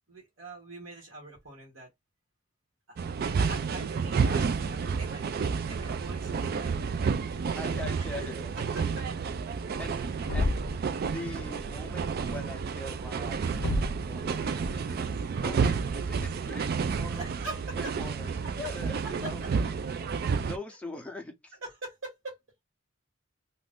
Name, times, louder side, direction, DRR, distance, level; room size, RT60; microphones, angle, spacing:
voice 1, 0.1-1.9 2.9-5.3 5.7-6.8 8.2-8.3 8.5-9.1 10.2-10.4 17.1-17.9 19.2-19.3 20.0-20.3 21.6-22.4, right 2 dB, 70° right, 1.3 m, -43 dB
sound 1, 3.0-20.6, right 5 dB, 50° right, 0.3 m, -30 dB
voice 2, 7.5-8.6 9.8-10.0 10.3-10.6 11.0-15.1 15.4-16.6 17.0-17.3 17.8-19.4 20.5-21.6, left 2 dB, 5° left, 0.6 m, -42 dB
Thump thud, 10.2-10.9 13.6-14.1, left 2 dB, 80° left, 0.5 m, -29 dB
2.5 x 2.5 x 3.5 m
head